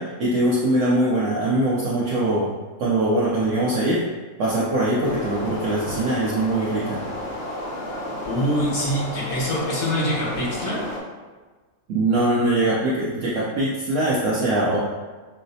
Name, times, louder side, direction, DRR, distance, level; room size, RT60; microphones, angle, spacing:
voice 1, 0.0-2.5 2.8-4.0 4.4-7.0 11.9-14.8, right 1 dB, 65° right, -6 dB, 0.8 m, -22 dB
sound 1, 5.0-11.0, left 1 dB, 55° left, 0.8 m, -32 dB
voice 2, 8.2-10.8, equal, 75° left, -5 dB, 1.4 m, -24 dB
4.7 x 2.0 x 2.6 m, 1.3 s
omnidirectional pair, 1.5 m